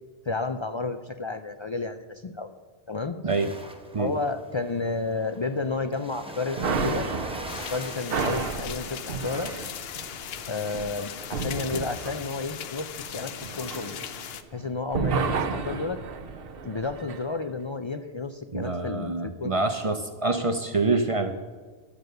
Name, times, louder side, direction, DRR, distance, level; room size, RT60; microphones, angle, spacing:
voice 1, 0.3-2.5 2.9-3.2 4.0-7.1 7.6-9.5 10.5-14.0 14.5-16.0 16.6-19.8, left 3 dB, 45° left, 8 dB, 0.3 m, -31 dB
sound 1, 3.3-9.0, equal, 5° right, 0.8 m, -42 dB
sound 2, 6.6-14.6 14.9-17.2, right 5 dB, 65° right, 1.0 m, -32 dB
sound 3, 7.5-14.4, left 9 dB, 75° left, 0.8 m, -38 dB
voice 2, 18.5-21.4, right 3 dB, 40° right, 7 dB, 0.6 m, -26 dB
11.0 x 7.7 x 6.6 m, 1.5 s
omnidirectional pair, 1.0 m